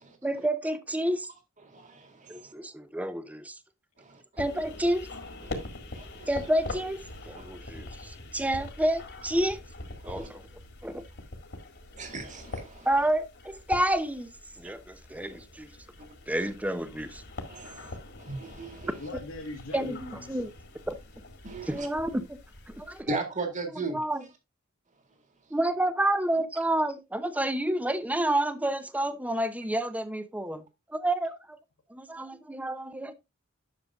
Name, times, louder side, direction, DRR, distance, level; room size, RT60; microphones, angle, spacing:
voice 1, 0.2-1.3 2.3-3.5 4.4-5.1 6.3-9.6 10.0-10.4 10.8-11.0 12.9-14.3 14.6-15.7 16.3-17.2 19.7-20.5 20.9-21.0 21.7-22.4 22.8-23.2 23.7-24.2 25.5-30.6 30.9-31.6 31.9-33.1, right 1 dB, 5° right, 0.7 m, -29 dB
voice 2, 1.7-2.4 5.5-5.6 5.9-6.1 10.0-10.3 12.0-12.9 17.5-18.0 18.3-18.9 21.4-21.9 23.1-24.0, right 3 dB, 35° right, 2.0 m, -36 dB
sound 1, 4.4-23.0, left 2 dB, 55° left, 1.9 m, -43 dB
voice 3, 19.0-20.4, left 2 dB, 80° left, 1.7 m, -40 dB
10.5 x 6.7 x 2.4 m
head